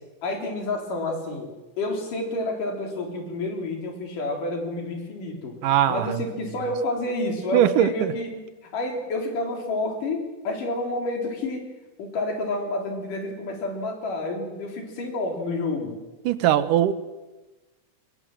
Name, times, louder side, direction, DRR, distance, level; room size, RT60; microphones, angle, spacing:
voice 1, 0.2-1.5 1.8-5.6 5.9-8.4 8.7-11.7 12.0-16.0, left 2 dB, 75° left, 2 dB, 5.1 m, -29 dB
voice 2, 5.6-6.2 7.5-8.1 16.3-16.9, right 11 dB, 80° right, 13 dB, 2.6 m, -20 dB
23.0 x 21.0 x 7.6 m, 1.1 s
omnidirectional pair, 3.8 m